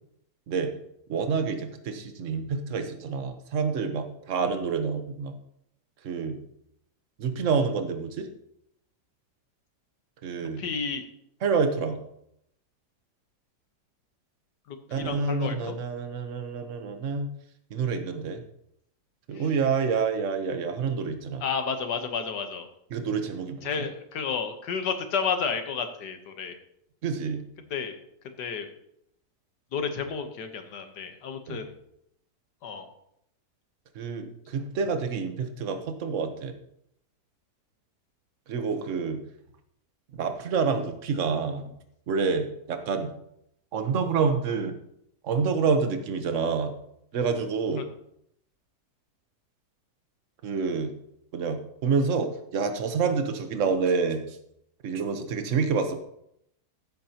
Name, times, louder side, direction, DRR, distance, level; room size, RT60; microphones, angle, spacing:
voice 1, 1.1-5.3 6.0-6.4 7.2-8.3 10.2-10.6 11.4-12.0 14.9-17.3 17.7-18.4 19.3-21.4 22.9-23.8 27.0-27.4 31.5-31.6 33.9-36.5 38.5-39.2 40.1-41.7 42.1-43.1 43.7-44.7 45.2-46.7 47.1-47.8 50.4-50.9 51.3-54.4 54.8-56.0, right 5 dB, 50° right, 7 dB, 1.2 m, -28 dB
voice 2, 10.4-11.0 14.7-15.7 19.3-19.4 21.4-22.7 23.6-26.6 27.7-28.0 28.4-28.7 29.7-31.7 32.6-32.9, left 6 dB, 75° left, 7 dB, 1.7 m, -31 dB
14.5 x 8.1 x 2.9 m, 0.76 s
omnidirectional pair, 1.8 m